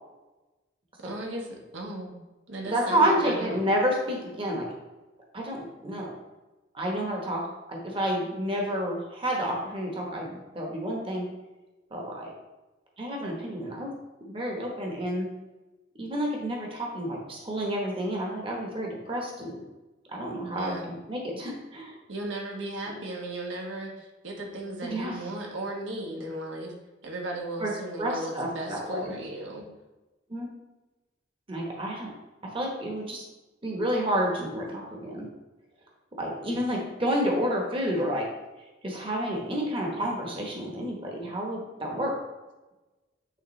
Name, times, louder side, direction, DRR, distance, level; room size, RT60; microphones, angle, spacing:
voice 1, 1.0-2.1 2.5-3.6 20.6-20.9 22.1-26.7 27.0-29.6, right 1 dB, 80° right, 0 dB, 1.2 m, -36 dB
voice 2, 2.7-4.6 5.3-6.1 6.7-7.4 7.7-11.2 11.9-12.3 13.0-13.9 14.3-15.3 16.0-19.6 20.1-21.9 24.8-25.2 27.6-27.7 28.0-29.2 30.3-30.5 31.5-32.1 32.5-33.2 33.6-35.3 36.2-38.3 38.8-42.1, equal, 30° right, -1 dB, 1.1 m, -29 dB
8.8 x 3.7 x 3.2 m, 1.1 s
head